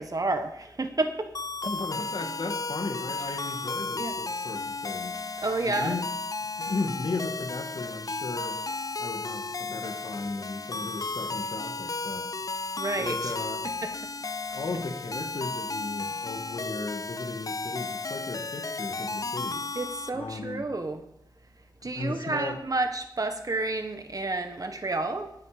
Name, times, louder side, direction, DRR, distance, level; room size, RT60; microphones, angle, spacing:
voice 1, 0.0-1.3 4.0-4.1 5.4-6.0 12.8-13.3 13.6-14.1 19.7-21.0 21.8-25.3, right 2 dB, 45° right, 7 dB, 1.5 m, -30 dB
sound 1, 1.3-20.1, left 3 dB, 45° left, 0.5 m, -34 dB
voice 2, 1.7-5.2 5.6-6.1 6.6-8.6 9.0-13.7 14.5-19.6 20.1-20.6 21.8-22.6, left 3 dB, 90° left, 4 dB, 1.9 m, -36 dB
18.0 x 8.2 x 5.1 m, 0.78 s
wide cardioid pair, 80°, 8 cm